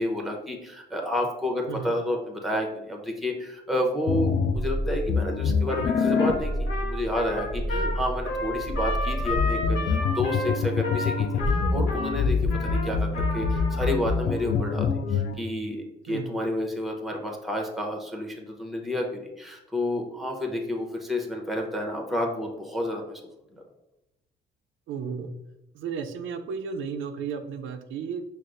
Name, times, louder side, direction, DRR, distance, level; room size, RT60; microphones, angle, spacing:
voice 1, 0.0-23.2 23.5-23.6, left 1 dB, ahead, 1 dB, 0.7 m, -30 dB
sound 1, 4.1-15.3, left 4 dB, 50° left, 0.4 m, -26 dB
Trumpet, 5.7-13.9, left 2 dB, 85° left, 0.9 m, -32 dB
voice 2, 24.9-25.3 25.7-28.2, right 6 dB, 80° right, 6 dB, 0.4 m, -33 dB
5.6 x 2.0 x 2.5 m, 0.90 s
cardioid pair, 90°, 20 cm